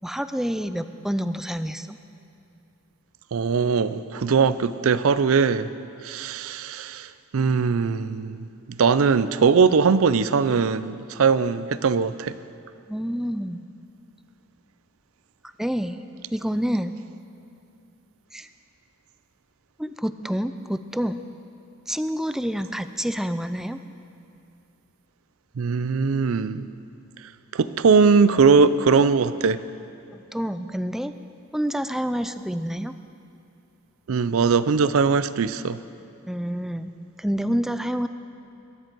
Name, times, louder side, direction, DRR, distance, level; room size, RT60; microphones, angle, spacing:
voice 1, 0.0-2.0 12.9-13.6 15.6-16.0 16.3-16.9 18.3-18.5 19.8-21.3 21.9-23.8 30.1-31.2 31.5-32.9 36.3-36.9 37.2-38.1, equal, ahead, 11 dB, 0.3 m, -28 dB
voice 2, 3.3-5.7 6.0-12.3 25.6-26.7 27.5-29.6 34.1-35.8, right 5 dB, 70° right, 15 dB, 0.5 m, -20 dB
21.5 x 10.5 x 4.6 m, 2.6 s
head